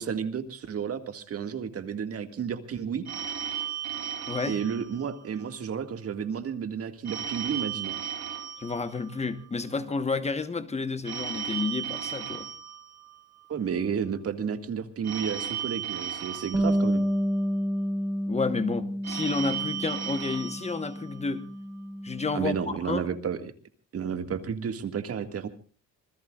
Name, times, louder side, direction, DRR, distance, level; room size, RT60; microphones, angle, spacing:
voice 1, 0.0-3.0 4.4-8.0 13.5-17.1 22.3-23.4 23.9-25.5, right 7 dB, 50° right, 1.9 m, -32 dB
Telephone, 3.0-5.5 7.0-9.5 11.0-13.5 15.0-17.5 19.0-21.5, right 9 dB, 70° right, 6.8 m, -36 dB
voice 2, 4.3-4.6 8.6-12.5 18.3-21.5 22.0-22.6 22.8-23.1, left 4 dB, 20° left, 1.2 m, -30 dB
Bass guitar, 16.5-22.8, equal, 10° right, 2.1 m, -30 dB
26.5 x 20.5 x 2.4 m
wide cardioid pair, 165°, 29 cm